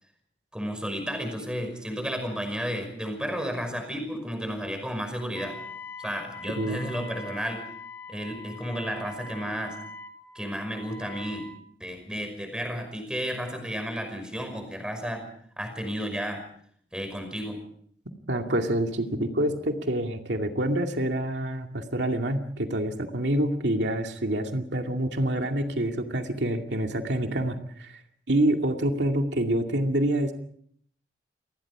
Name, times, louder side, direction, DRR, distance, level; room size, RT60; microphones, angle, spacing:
voice 1, 0.5-5.6 6.0-7.6 8.1-9.7 10.3-11.4 11.8-15.2 15.6-16.4 16.9-17.6, equal, 5° right, 6 dB, 5.6 m, -32 dB
Wind instrument woodwind instrument, 5.4-11.6, left 3 dB, 15° left, 2.0 m, -43 dB
voice 2, 18.3-28.0 28.3-30.3, right 1 dB, 85° right, 4 dB, 2.3 m, -27 dB
28.5 x 20.5 x 4.9 m, 0.63 s
head